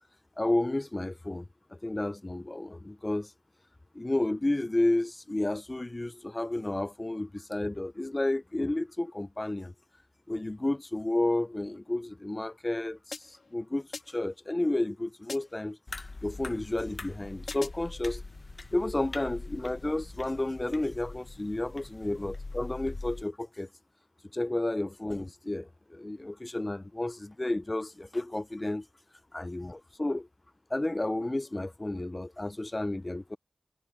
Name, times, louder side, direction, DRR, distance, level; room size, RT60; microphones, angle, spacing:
voice 1, 0.4-1.4 1.7-3.3 3.9-9.7 10.3-15.8 16.2-18.2 18.7-23.7 24.3-28.9 29.3-30.3 30.7-33.4, left 1 dB, 25° left, 0.5 m, -31 dB
sound 1, 13.1-13.5 13.9-14.4 15.3-15.7 17.5-18.0, left 4 dB, 80° left, 2.9 m, -43 dB
sound 2, 15.9-23.2, left 3 dB, 50° left, 1.1 m, -43 dB
sound 3, 16.6-22.3, right 4 dB, 65° right, 5.7 m, -60 dB
wide cardioid pair, 75°, 0 cm